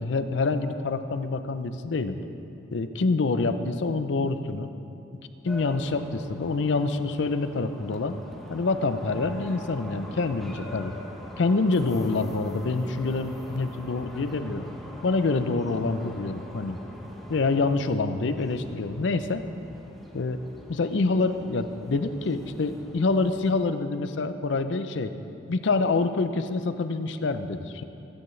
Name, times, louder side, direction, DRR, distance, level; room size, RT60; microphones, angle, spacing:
voice 1, 0.0-2.2 2.7-4.7 5.4-8.2 8.5-10.9 11.4-14.7 15.0-16.8 17.3-19.4 20.1-20.4 20.7-25.1 25.5-27.8, left 3 dB, 65° left, 10 dB, 0.5 m, -26 dB
sound 1, 5.5-23.5, equal, ahead, 0.9 m, -44 dB
15.5 x 9.3 x 3.2 m, 2.8 s
head